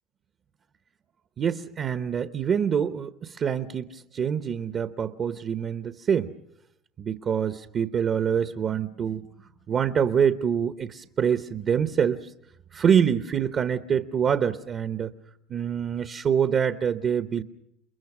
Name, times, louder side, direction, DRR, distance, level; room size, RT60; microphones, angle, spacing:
voice 1, 1.4-6.3 7.0-12.3 12.7-15.1 15.5-17.4, right 7 dB, 35° right, 10 dB, 0.9 m, -25 dB
29.5 x 22.0 x 6.1 m, 0.77 s
supercardioid pair, 130°, 0 cm